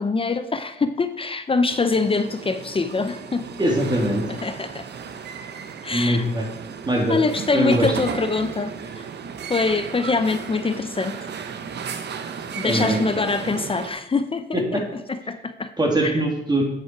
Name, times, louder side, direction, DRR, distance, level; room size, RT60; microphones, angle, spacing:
voice 1, 0.0-3.5 4.4-4.9 5.8-6.2 7.1-9.1 9.5-11.2 12.6-14.8 15.1-15.7 16.0-16.2, left 4 dB, 30° left, 10 dB, 0.6 m, -24 dB
sound 1, 1.7-13.9, right 6 dB, 60° right, 0.9 m, -34 dB
voice 2, 3.6-4.2 5.9-6.5 6.9-7.2 7.5-7.9 12.6-13.0 14.5-14.8 15.8-16.6, right 1 dB, 20° right, 0 dB, 2.7 m, -21 dB
9.2 x 7.8 x 4.6 m, 0.84 s
cardioid pair, 100°, 19 cm